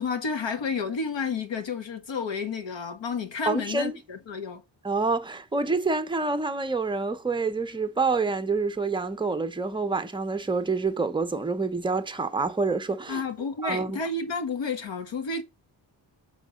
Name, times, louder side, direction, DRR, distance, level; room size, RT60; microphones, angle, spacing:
voice 1, 0.0-4.6 13.1-15.4, left 4 dB, 85° left, 1.7 m, -31 dB
voice 2, 3.5-4.0 4.8-13.2 13.6-14.0, right 3 dB, 10° right, 0.6 m, -27 dB
6.5 x 3.8 x 6.3 m
wide cardioid pair, 160°, 43 cm